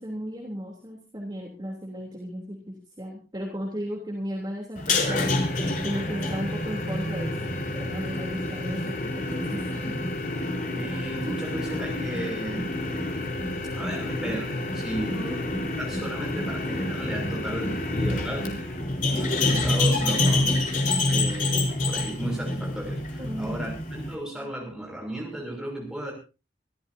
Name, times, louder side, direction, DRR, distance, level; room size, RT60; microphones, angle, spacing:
voice 1, 0.0-5.5 5.8-10.0 15.1-15.4 23.2-23.7, equal, 25° right, -1 dB, 3.2 m, -35 dB
sound 1, 4.7-24.1, left 2 dB, 45° left, 4.2 m, -28 dB
voice 2, 10.8-12.7 13.7-15.2 15.8-18.7 19.1-20.6 21.1-26.1, right 1 dB, 5° right, 0 dB, 6.1 m, -35 dB
26.0 x 14.0 x 2.7 m, 0.32 s
head